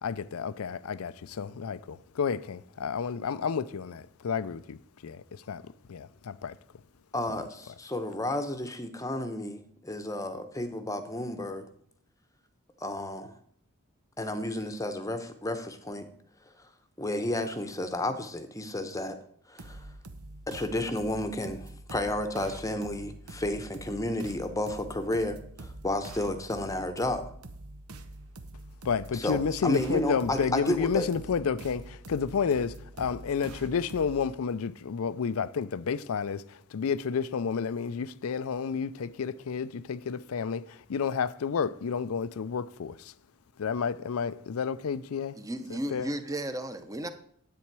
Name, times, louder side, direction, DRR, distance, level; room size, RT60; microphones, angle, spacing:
voice 1, 0.0-4.8 5.0-5.6 5.9-6.5 28.8-36.4 36.7-43.1 43.6-45.4 45.7-46.1, left 6 dB, 80° left, 0.4 m, -31 dB
voice 2, 7.1-11.6 12.8-13.4 14.2-16.1 17.0-19.2 19.5-19.9 20.5-27.2 29.1-31.1, left 1 dB, 15° left, 0.8 m, -32 dB
sound 1, 19.6-34.4, right 2 dB, 90° right, 0.9 m, -45 dB
voice 3, 45.3-47.1, right 1 dB, 15° right, 0.7 m, -34 dB
10.0 x 8.5 x 4.6 m
head